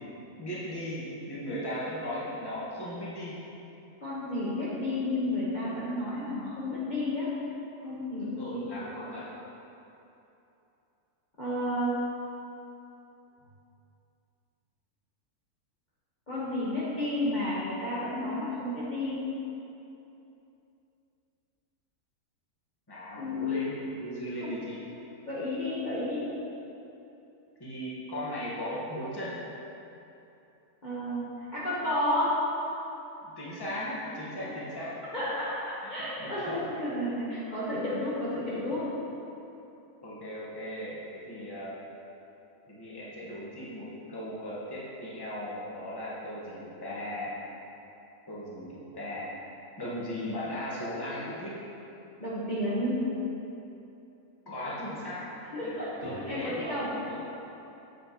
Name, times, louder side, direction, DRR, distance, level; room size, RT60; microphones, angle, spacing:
voice 1, 0.4-3.4 8.2-9.3 22.9-24.8 27.6-29.4 33.2-35.0 36.0-36.6 38.5-38.6 40.0-41.0 41.3-41.8 42.7-47.3 48.3-49.3 49.8-51.6 54.4-55.3 55.6-55.7 56.0-57.3, equal, 15° left, -7 dB, 1.4 m, -37 dB
voice 2, 4.0-7.3 7.8-8.7 11.4-12.0 16.3-19.2 23.2-23.6 24.4-24.6 25.2-26.3 30.8-32.3 34.3-34.4 35.1-38.8 52.2-53.1 55.5-56.9, left 1 dB, 30° left, -10 dB, 1.4 m, -31 dB
9.1 x 8.0 x 3.1 m, 2.9 s
omnidirectional pair, 1.6 m